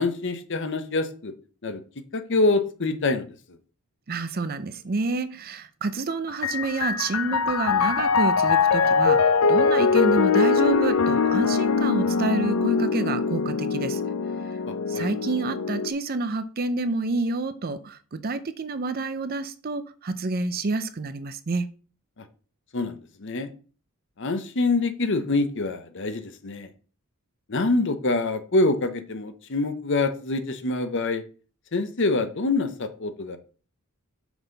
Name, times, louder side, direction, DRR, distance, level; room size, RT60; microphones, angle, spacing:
voice 1, 0.0-1.3 1.6-1.8 2.1-3.3 14.7-15.1 22.7-23.5 24.2-26.7 27.5-31.2 31.7-33.4, left 3 dB, 55° left, 0.8 m, -25 dB
voice 2, 4.1-9.2 9.5-14.0 14.9-21.6, right 3 dB, 45° right, 0.5 m, -28 dB
Piano, 6.3-15.9, left 5 dB, 75° left, 0.5 m, -22 dB
6.1 x 5.5 x 4.0 m
head